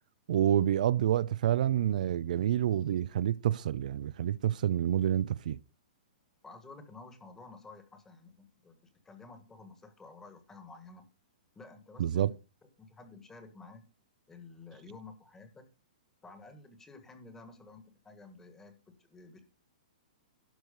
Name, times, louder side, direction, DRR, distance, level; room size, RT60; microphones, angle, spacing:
voice 1, 0.3-5.6 12.0-12.3, right 11 dB, 60° right, 0.4 m, -28 dB
voice 2, 6.4-11.1 11.5-12.4 12.8-13.9 14.3-15.7 16.2-19.4, left 3 dB, 10° left, 1.5 m, -52 dB
12.0 x 4.6 x 6.7 m
hypercardioid pair, 155°, 5 cm